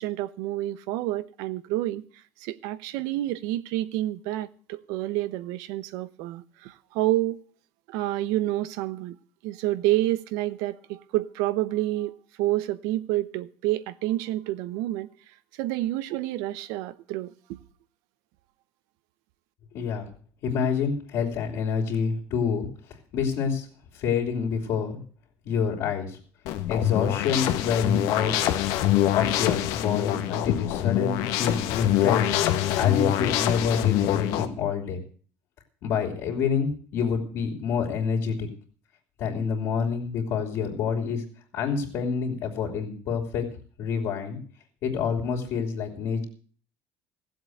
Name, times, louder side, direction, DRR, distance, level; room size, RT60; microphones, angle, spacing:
voice 1, 0.0-2.0 2.4-7.4 7.9-9.2 9.4-15.1 15.6-17.6, right 15 dB, 85° right, 0.9 m, -29 dB
voice 2, 19.7-20.0 20.4-22.7 23.1-23.7 23.9-25.0 25.4-26.2 26.7-28.3 29.1-32.3 32.8-35.0 35.8-38.5 39.2-41.2 41.5-43.5 43.8-44.4 44.8-46.2, left 6 dB, 55° left, 3.3 m, -27 dB
sound 1, 26.4-34.4, left 12 dB, 75° left, 1.4 m, -25 dB
15.5 x 7.8 x 7.9 m
cardioid pair, 150°, 6 cm